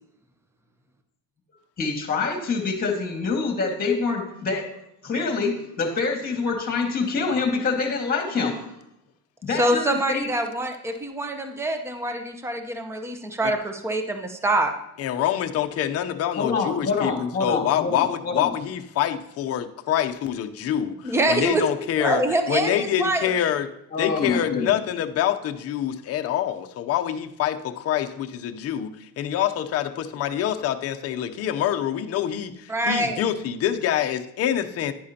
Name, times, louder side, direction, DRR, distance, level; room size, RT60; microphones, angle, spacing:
voice 1, 1.8-4.7 5.0-8.7 9.4-10.3 16.4-18.5 23.9-24.8, left 4 dB, 25° left, 3 dB, 1.8 m, -26 dB
voice 2, 9.5-14.7 21.0-21.7 22.0-23.3 32.7-33.2, right 1 dB, 5° right, 6 dB, 0.8 m, -25 dB
voice 3, 15.0-22.2 22.5-23.7 24.0-34.9, left 10 dB, 45° left, 6 dB, 0.7 m, -26 dB
10.5 x 10.0 x 2.8 m, 0.83 s
cardioid pair, 145°, 35 cm